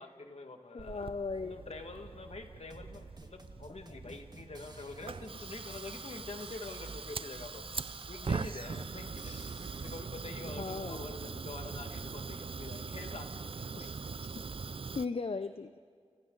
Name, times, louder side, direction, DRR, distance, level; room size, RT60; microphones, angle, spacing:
voice 1, 0.0-1.1 1.4-7.7 8.1-13.9, left 3 dB, 75° left, 4 dB, 2.0 m, -46 dB
voice 2, 0.7-1.6 3.9-4.0 5.4-5.6 9.1-9.5 10.6-11.1 13.7-14.3 14.9-15.8, left 4 dB, 60° left, 10 dB, 0.6 m, -39 dB
Fire, 0.8-15.1, right 5 dB, 55° right, 0.5 m, -42 dB
sound 1, 2.7-10.1, right 2 dB, 40° right, 1.8 m, -53 dB
30.0 x 28.5 x 4.0 m, 2.1 s
wide cardioid pair, 45°, 11 cm